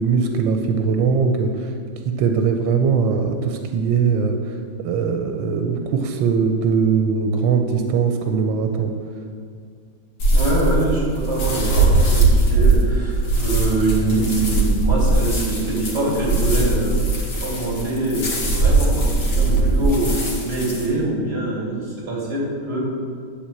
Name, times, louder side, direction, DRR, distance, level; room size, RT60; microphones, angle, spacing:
voice 1, 0.0-1.7 2.0-4.6 4.8-8.9, right 5 dB, 90° right, 5 dB, 1.4 m, -20 dB
sound 1, 10.2-20.9, right 2 dB, 65° left, 2.3 m, -20 dB
voice 2, 10.3-22.8, right 2 dB, 30° right, -5 dB, 3.0 m, -24 dB
10.5 x 4.5 x 7.4 m, 2.1 s
omnidirectional pair, 2.0 m